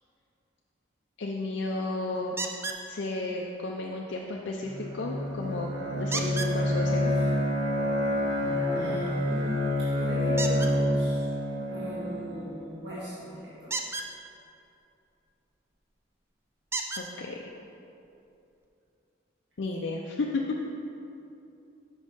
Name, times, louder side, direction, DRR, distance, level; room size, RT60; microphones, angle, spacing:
voice 1, 1.2-2.4 2.8-7.1 17.0-17.4 19.6-20.6, left 2 dB, 65° left, -1 dB, 0.5 m, -33 dB
sound 1, 2.4-2.8 6.1-6.5 10.4-10.7 13.6-14.1 15.7-15.8 16.7-17.1 18.1-18.2 18.6-18.7, right 3 dB, 15° right, 0.3 m, -32 dB
Bowed string instrument, 4.6-12.5, left 1 dB, 85° right, 1.2 m, -28 dB
voice 2, 8.7-11.3 11.7-13.7, equal, 60° right, -10 dB, 1.7 m, -38 dB
6.2 x 5.3 x 5.4 m, 2.7 s
head